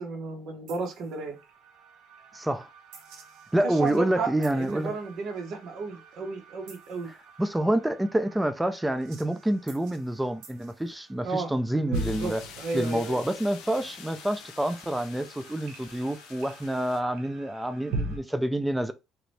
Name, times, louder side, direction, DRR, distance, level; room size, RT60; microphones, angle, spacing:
voice 1, 0.0-1.4 3.6-7.1 11.2-11.5 11.9-13.2, right 4 dB, 50° right, 1.0 m, -33 dB
sound 1, 0.7-18.2, right 3 dB, 75° right, 0.8 m, -42 dB
voice 2, 2.3-2.7 3.5-4.9 7.4-12.4 12.7-18.9, right 1 dB, 5° right, 0.3 m, -27 dB
sound 2, 11.9-17.0, left 8 dB, 85° left, 0.5 m, -47 dB
2.8 x 2.6 x 3.2 m
cardioid pair, 150°, 0 cm